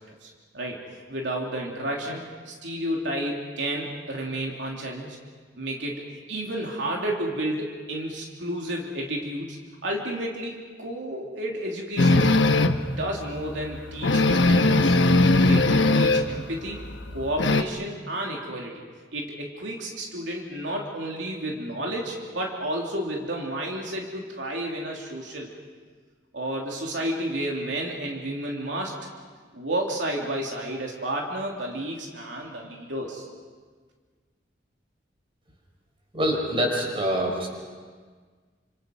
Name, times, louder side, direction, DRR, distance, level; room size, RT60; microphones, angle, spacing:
voice 1, 0.2-0.8 1.1-5.2 5.6-9.6 9.8-10.5 10.8-12.5 13.0-14.9 15.3-16.8 17.1-18.8 19.1-25.5 26.3-28.9 29.5-33.3, right 1 dB, 75° right, -1 dB, 3.1 m, -31 dB
sound 1, 12.0-12.9 13.4-13.5 13.7-13.8 14.0-16.4 16.7-17.6, left 2 dB, 80° left, 1.2 m, -19 dB
voice 2, 36.1-37.5, equal, 30° right, 1 dB, 5.5 m, -25 dB
30.0 x 27.0 x 5.4 m, 1.5 s
head